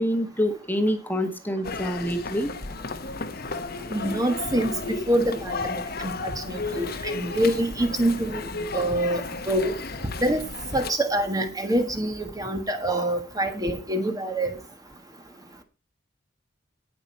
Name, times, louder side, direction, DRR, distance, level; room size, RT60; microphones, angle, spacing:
voice 1, 0.0-2.5, equal, 10° left, 1.5 m, -26 dB
sound 1, 1.6-10.9, left 3 dB, 50° left, 1.2 m, -34 dB
voice 2, 3.9-8.5 8.7-9.7 10.2-10.5 10.7-14.5, right 1 dB, 20° right, 1.5 m, -26 dB
18.0 x 6.1 x 4.4 m
head